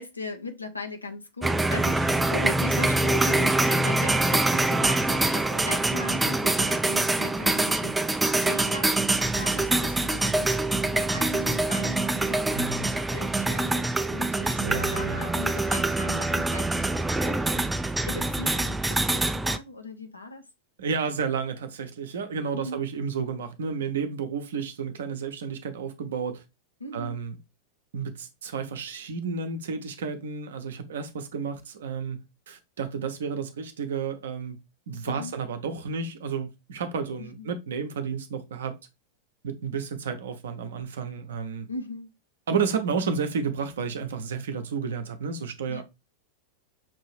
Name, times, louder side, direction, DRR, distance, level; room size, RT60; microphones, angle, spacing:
voice 1, 0.0-8.0 8.4-17.7 18.0-20.4 22.5-22.8 26.8-27.2 35.0-35.4 37.2-37.5 41.7-42.1 45.7-45.8, left 2 dB, 80° left, 0.7 m, -39 dB
sound 1, 1.4-19.6, right 2 dB, 10° right, 0.3 m, -25 dB
voice 2, 12.5-12.9 14.5-15.2 20.8-26.4 26.9-27.4 27.9-32.2 32.5-34.6 34.9-38.8 39.4-41.7 42.5-45.8, right 6 dB, 60° right, 0.7 m, -31 dB
6.0 x 2.7 x 3.0 m
figure-of-eight pair, 90°, 0 cm